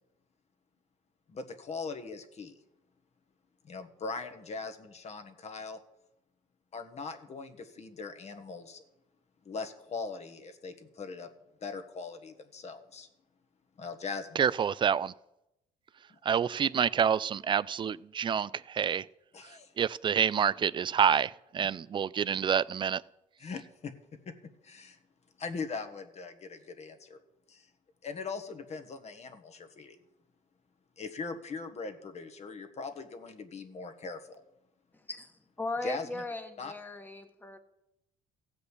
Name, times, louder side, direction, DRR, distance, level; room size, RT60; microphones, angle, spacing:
voice 1, 1.3-2.6 3.6-5.8 6.7-8.8 9.4-11.3 11.6-13.1 13.8-14.4 16.1-16.2 19.3-19.7 23.4-23.9 24.6-25.0 25.4-27.2 27.5-27.7 28.0-30.0 31.0-34.4 35.8-36.2 36.6-36.7, left 4 dB, 40° left, 1.4 m, -40 dB
voice 2, 14.4-15.1 16.3-19.1 19.8-23.0, right 8 dB, 30° right, 0.3 m, -27 dB
voice 3, 34.9-37.6, left 2 dB, 10° left, 1.4 m, -38 dB
15.5 x 5.3 x 8.2 m
cardioid pair, 110°, 17 cm